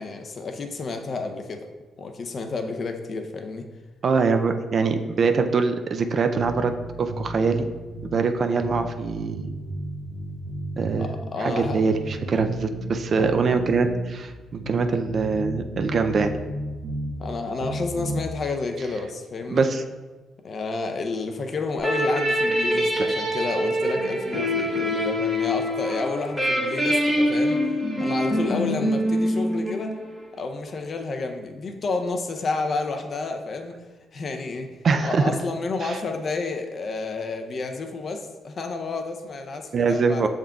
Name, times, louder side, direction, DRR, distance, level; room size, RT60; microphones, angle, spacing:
voice 1, 0.0-1.7 2.0-3.7 11.0-11.8 13.2-13.3 17.2-19.7 20.4-27.7 28.0-29.9 30.3-33.8 34.1-34.7 35.0-40.3, left 3 dB, 45° left, 5 dB, 0.5 m, -30 dB
voice 2, 4.0-6.7 7.0-7.7 8.1-9.5 10.8-11.1 11.4-16.3 19.5-19.8 34.8-35.3 35.8-36.0 39.7-40.3, right 4 dB, 50° right, 7 dB, 0.4 m, -23 dB
sound 1, 6.3-8.2 8.6-11.2 11.6-14.2 14.6-17.2 17.6-18.3, right 1 dB, 75° right, 0.9 m, -33 dB
sound 2, 21.8-30.3, equal, 10° right, 1.4 m, -24 dB
6.3 x 3.6 x 2.3 m, 1.3 s
cardioid pair, 90°, 0 cm